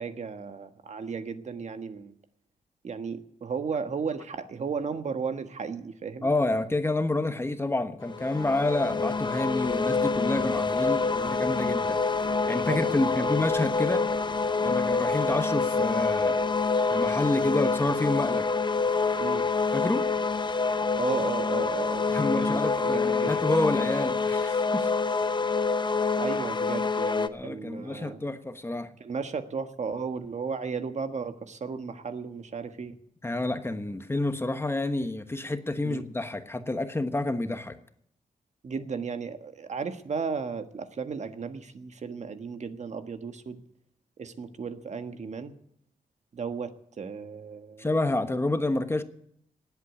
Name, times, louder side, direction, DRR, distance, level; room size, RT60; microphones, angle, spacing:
voice 1, 0.0-2.1 2.8-6.3 12.7-13.3 19.2-19.5 20.9-22.0 22.4-23.4 26.2-28.2 29.0-33.0 35.8-36.0 38.6-43.6 44.2-45.5 46.3-47.9, right 5 dB, 55° right, 8 dB, 1.4 m, -34 dB
voice 2, 6.2-12.0 12.5-14.1 14.6-16.4 16.9-18.5 19.7-20.1 22.1-24.9 27.3-28.9 33.2-37.8 47.8-49.0, left 2 dB, 15° left, 9 dB, 1.2 m, -28 dB
sound 1, 8.1-27.3, left 4 dB, 30° left, 0.8 m, -26 dB
19.0 x 8.3 x 8.4 m, 0.71 s
cardioid pair, 100°, 14 cm